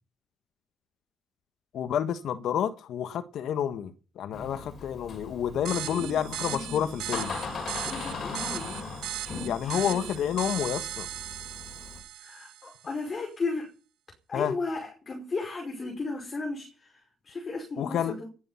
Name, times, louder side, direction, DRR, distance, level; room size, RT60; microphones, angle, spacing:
voice 1, 1.7-7.4 9.4-11.1 14.3-14.5 17.8-18.2, left 9 dB, 75° left, 1.4 m, -29 dB
Door, 4.3-12.0, left 4 dB, 55° left, 6.2 m, -39 dB
sound 1, 5.6-12.8, right 13 dB, 90° right, 1.4 m, -38 dB
voice 2, 5.8-6.9 7.9-8.8 9.6-10.1 12.2-13.7 14.3-17.0 17.3-18.3, left 3 dB, 40° left, 5.2 m, -35 dB
19.0 x 12.0 x 5.8 m
cardioid pair, 90°, 0 cm